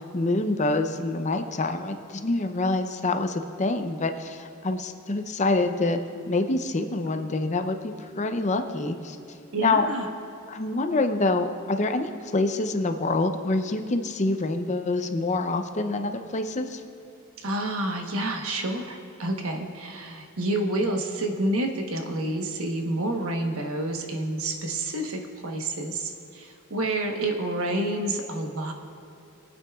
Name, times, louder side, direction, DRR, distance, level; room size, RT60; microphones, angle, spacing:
voice 1, 0.1-6.0 6.3-9.2 9.6-9.9 10.5-16.8, left 2 dB, 35° left, 7 dB, 0.6 m, -26 dB
voice 2, 9.5-10.1 17.4-28.7, right 1 dB, 75° right, 3 dB, 1.1 m, -29 dB
22.0 x 9.0 x 2.4 m, 2.7 s
head